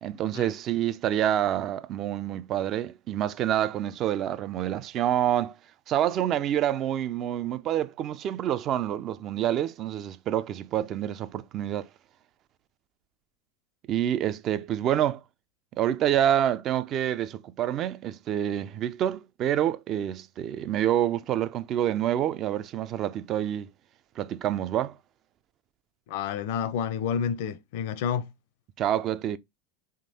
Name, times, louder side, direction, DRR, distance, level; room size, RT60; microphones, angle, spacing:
voice 1, 0.0-5.5 5.9-11.9 13.9-15.2 15.8-23.7 24.2-24.9 28.8-29.4, right 11 dB, 40° right, 0.4 m, -27 dB
voice 2, 26.1-28.3, left 7 dB, 65° left, 0.6 m, -29 dB
3.7 x 2.8 x 4.0 m
hypercardioid pair, 105°, 0 cm